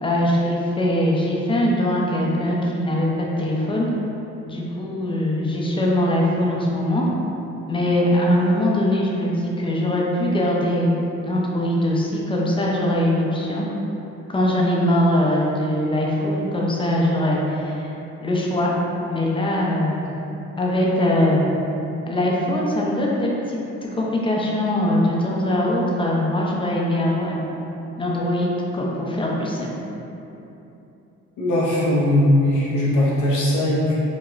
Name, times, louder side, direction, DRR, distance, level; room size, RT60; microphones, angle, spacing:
voice 1, 0.0-3.9 4.5-7.1 7.7-11.0 11.2-13.7 14.3-17.9 18.2-18.8 19.1-20.0 20.6-21.4 22.1-23.6 23.9-27.4 28.0-29.7, left 1 dB, 15° left, -3 dB, 0.6 m, -21 dB
voice 2, 31.4-34.0, left 1 dB, 75° left, -7 dB, 0.8 m, -19 dB
4.8 x 2.2 x 2.5 m, 3.0 s
cardioid pair, 90°, 30 cm